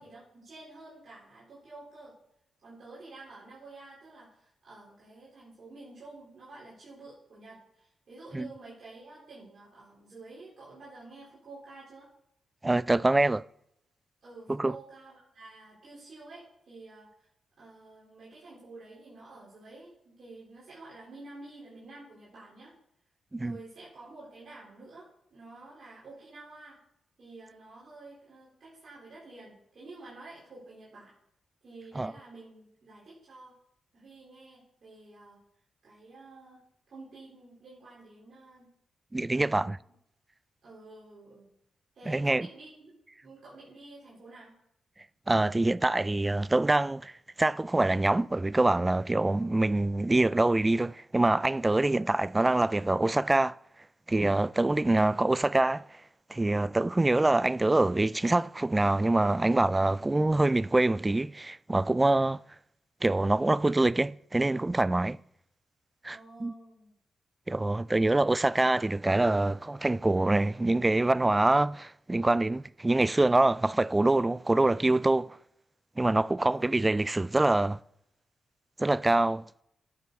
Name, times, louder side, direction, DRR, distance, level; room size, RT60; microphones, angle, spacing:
voice 1, 0.0-2.1 2.6-12.1 14.2-17.3 17.6-22.7 23.4-26.8 27.2-31.1 31.6-33.5 33.9-35.4 35.8-36.6 36.9-38.7 39.3-39.7 40.6-41.5 41.9-42.9 43.2-44.5 66.1-66.9 67.9-68.2 76.4-76.7, right 2 dB, 65° right, 4.2 m, -50 dB
voice 2, 12.6-13.4 14.5-14.7 23.3-23.6 32.0-32.1 39.1-39.8 42.1-42.5 45.3-47.1 47.4-53.6 54.1-55.9 56.3-62.4 63.0-65.2 66.0-66.5 67.5-75.4 76.0-77.8 78.8-79.4, right 2 dB, 20° right, 0.3 m, -25 dB
11.5 x 7.6 x 4.1 m
supercardioid pair, 50°, 0 cm